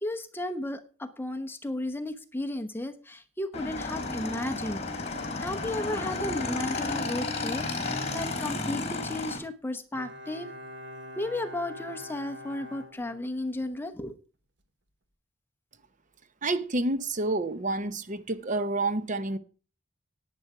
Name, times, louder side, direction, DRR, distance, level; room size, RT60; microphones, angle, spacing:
voice 1, 0.0-4.8 5.4-10.5 11.2-14.2, left 1 dB, 10° left, 0.9 m, -34 dB
Motorcycle / Engine, 3.5-9.4, left 3 dB, 35° left, 3.9 m, -32 dB
Bowed string instrument, 9.9-13.7 14.0-14.1, left 1 dB, 65° right, 1.2 m, -44 dB
voice 2, 16.4-19.4, right 2 dB, 40° right, 0.8 m, -29 dB
11.0 x 9.3 x 4.9 m
head